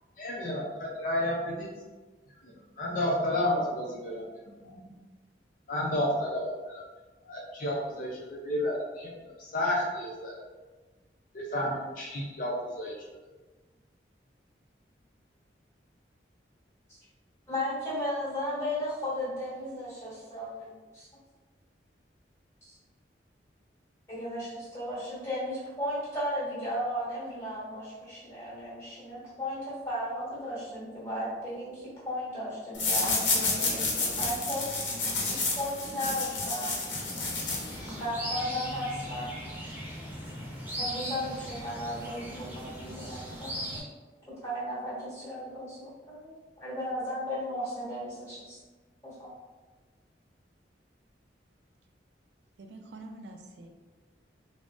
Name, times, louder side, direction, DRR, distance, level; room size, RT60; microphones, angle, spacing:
voice 1, 0.2-1.7 2.4-4.2 4.6-4.8 5.7-6.8 7.3-9.1 9.4-10.4 11.3-12.9, left 1 dB, 45° left, -2 dB, 0.4 m, -31 dB
voice 2, 17.5-21.1 22.6-22.8 24.1-34.7 35.3-36.8 37.8-39.3 40.8-43.8 44.4-48.6 49.0-49.3, left 1 dB, 15° left, -9 dB, 1.2 m, -35 dB
sound 1, 32.7-38.1, left 3 dB, 80° left, 0.7 m, -30 dB
sound 2, 36.9-43.8, equal, 10° right, 0.6 m, -39 dB
voice 3, 52.6-53.7, right 2 dB, 70° right, 3 dB, 0.3 m, -46 dB
3.6 x 2.0 x 2.3 m, 1.3 s
head